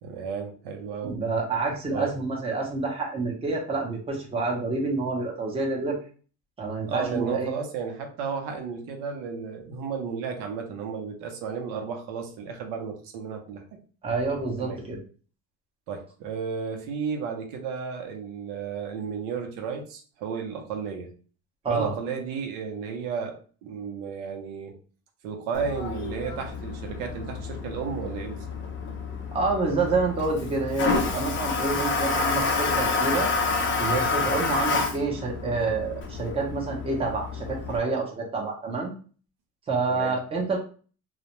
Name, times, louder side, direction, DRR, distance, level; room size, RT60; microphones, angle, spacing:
voice 1, 0.0-1.2 1.9-2.1 6.9-13.6 14.6-14.8 15.9-21.1 21.7-24.8 25.2-28.5 39.9-40.2, right 6 dB, 80° right, 4 dB, 0.7 m, -33 dB
voice 2, 1.0-6.0 6.6-7.5 14.0-15.0 21.6-21.9 29.3-33.3 33.8-38.9 39.7-40.6, right 3 dB, 15° right, -1 dB, 0.6 m, -28 dB
Toilet flush, 25.5-37.8, left 4 dB, 30° left, 0.4 m, -29 dB
2.3 x 2.1 x 2.9 m, 0.39 s
cardioid pair, 130°, 40 cm